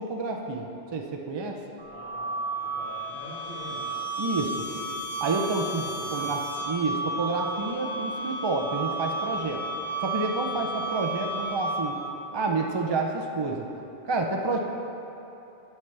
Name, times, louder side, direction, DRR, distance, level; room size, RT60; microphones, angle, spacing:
voice 1, 0.0-1.6 4.2-4.7 5.2-9.6 10.0-12.0 12.3-13.7 14.0-14.6, right 3 dB, 35° right, 2 dB, 0.5 m, -29 dB
sound 1, 1.8-12.2, right 2 dB, 85° right, 2.2 m, -33 dB
voice 2, 1.9-2.4 2.6-3.8 4.6-5.0 5.8-6.3 10.6-10.7, equal, 90° left, -14 dB, 2.4 m, -44 dB
10.5 x 6.9 x 3.3 m, 3.0 s
omnidirectional pair, 1.0 m